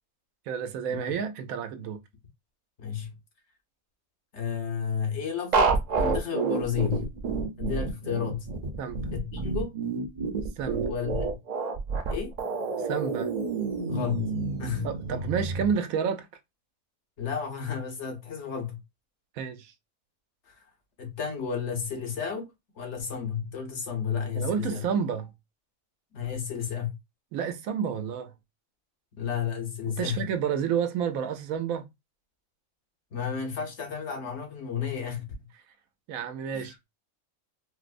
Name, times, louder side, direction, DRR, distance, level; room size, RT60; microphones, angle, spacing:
voice 1, 0.5-2.0 8.8-9.1 10.6-10.9 12.8-13.3 14.8-16.3 19.3-19.7 24.3-25.3 27.3-28.3 29.9-31.9 36.1-36.8, right 7 dB, 85° right, 1.0 m, -30 dB
voice 2, 2.8-3.1 4.3-7.1 7.6-8.5 9.1-9.7 10.9-11.2 12.1-12.3 13.9-14.9 17.2-18.8 20.5-20.6 21.0-24.8 26.1-26.9 29.2-30.2 33.1-35.2 36.5-36.7, left 7 dB, 60° left, 1.1 m, -32 dB
sound 1, 5.5-15.7, right 4 dB, 45° right, 0.5 m, -29 dB
4.4 x 2.0 x 2.4 m
omnidirectional pair, 1.4 m